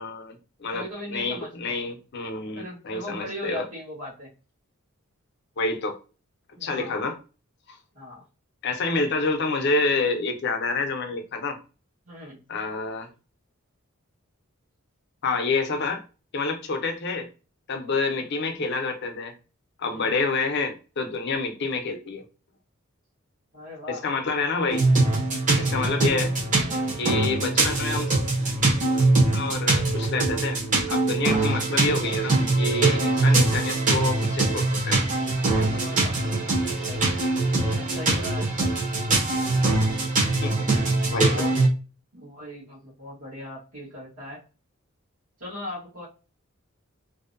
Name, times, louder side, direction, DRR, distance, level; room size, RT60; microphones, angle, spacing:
voice 1, 0.0-0.8 1.1-3.6 5.6-6.0 6.6-7.2 7.7-7.8 8.6-11.6 12.5-13.1 15.2-16.0 16.3-17.3 17.7-19.3 19.8-22.2 23.9-24.9 25.6-26.4 27.0-28.2 29.3-30.6 30.9-35.0 40.4-40.6 41.1-41.3, left 3 dB, 55° left, 0.5 m, -28 dB
voice 2, 0.7-1.8 2.5-4.3 6.6-7.0 7.9-8.2 12.1-12.4 19.8-20.2 23.5-24.0 25.4-25.9 31.3-31.6 35.4-37.0 37.7-38.7 40.6-41.5 42.1-44.4 45.4-46.1, left 1 dB, 70° right, 1.1 m, -39 dB
sound 1, 24.7-41.7, right 2 dB, 40° right, 0.8 m, -23 dB
2.6 x 2.1 x 2.4 m
head